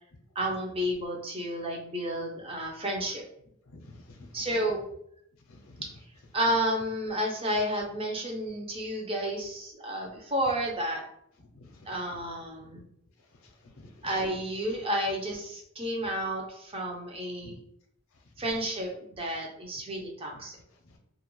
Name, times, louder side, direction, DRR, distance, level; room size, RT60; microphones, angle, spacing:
voice 1, 0.4-3.2 4.3-4.8 6.3-11.0 11.9-12.8 14.0-17.5 18.4-18.9 19.2-20.6, equal, 30° right, -1 dB, 0.5 m, -31 dB
voice 2, 3.7-4.7 5.5-5.8 11.5-11.9 13.4-14.1 17.4-17.6, left 2 dB, 85° left, 4 dB, 0.5 m, -50 dB
2.4 x 2.1 x 3.0 m, 0.71 s
head